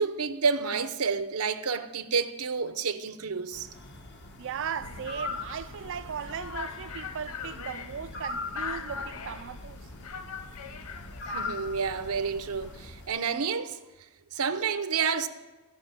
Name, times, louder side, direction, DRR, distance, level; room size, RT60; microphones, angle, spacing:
voice 1, 0.0-3.7 11.3-13.8 14.3-15.3, right 5 dB, 90° right, 0.9 m, -29 dB
sound 1, 3.5-13.2, left 2 dB, 50° left, 1.2 m, -42 dB
voice 2, 4.4-9.8, right 7 dB, 60° right, 0.4 m, -37 dB
sound 2, 4.8-12.9, left 5 dB, 90° left, 0.9 m, -41 dB
15.5 x 5.8 x 8.8 m
head